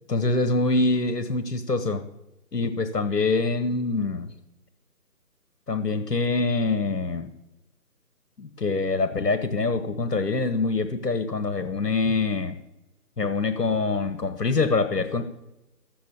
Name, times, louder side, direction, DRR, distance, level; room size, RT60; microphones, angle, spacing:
voice 1, 0.1-2.0 2.5-4.3 5.7-7.3 8.4-12.6 13.2-15.2, left 3 dB, 75° left, 9 dB, 1.3 m, -25 dB
13.5 x 7.8 x 7.0 m, 0.96 s
figure-of-eight pair, 165°, 49 cm